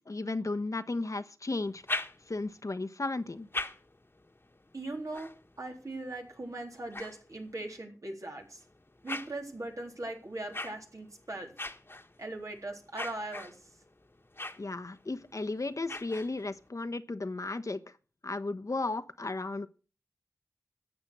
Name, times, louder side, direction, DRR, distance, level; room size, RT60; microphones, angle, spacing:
voice 1, 0.1-1.8 2.3-3.5 14.6-17.8 18.2-19.7, left 2 dB, 60° left, 1.1 m, -34 dB
sound 1, 1.6-2.6 3.2-7.8 8.4-16.7, left 2 dB, 40° left, 1.5 m, -43 dB
voice 2, 4.7-5.3 5.6-8.6 9.0-11.5 12.2-13.6, right 2 dB, 60° right, 3.6 m, -39 dB
13.5 x 8.7 x 6.2 m
wide cardioid pair, 40°, 6 cm